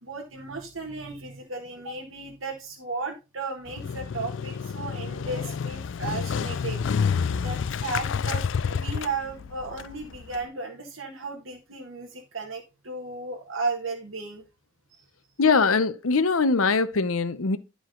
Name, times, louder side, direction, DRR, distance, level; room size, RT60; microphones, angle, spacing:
voice 1, 0.0-7.1 7.4-14.5, right 3 dB, 70° right, 1.8 m, -35 dB
Motorcycle, 3.7-10.4, left 6 dB, 65° left, 0.3 m, -29 dB
voice 2, 15.4-17.6, left 4 dB, 85° left, 0.8 m, -22 dB
11.5 x 4.9 x 3.8 m
head